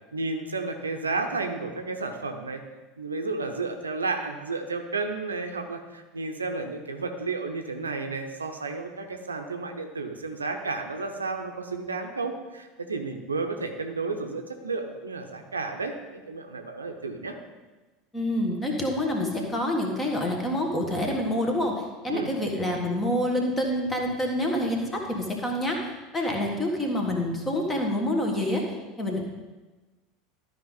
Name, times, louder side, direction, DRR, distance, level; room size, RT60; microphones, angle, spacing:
voice 1, 0.1-2.6 3.0-17.4 22.1-22.3, right 3 dB, 80° right, 5 dB, 0.7 m, -32 dB
voice 2, 18.1-25.8 26.1-28.6 29.0-29.2, left 1 dB, 15° left, 1 dB, 1.7 m, -27 dB
12.5 x 5.1 x 4.0 m, 1.2 s
figure-of-eight pair, 75°, 0 cm